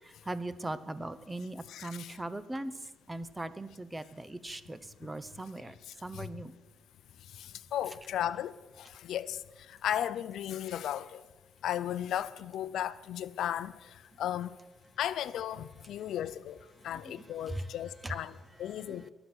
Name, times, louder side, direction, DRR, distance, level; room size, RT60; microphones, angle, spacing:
voice 1, 0.0-2.7 3.1-5.7 6.0-6.5 17.5-17.6 18.0-18.1 18.9-19.0, right 2 dB, 15° right, 0.8 m, -39 dB
voice 2, 1.7-2.2 6.1-6.3 7.4-9.4 9.7-11.2 11.6-13.7 14.2-14.5 15.0-19.1, left 11 dB, 75° left, 0.5 m, -35 dB
22.0 x 8.0 x 6.3 m
cardioid pair, 90°, 0 cm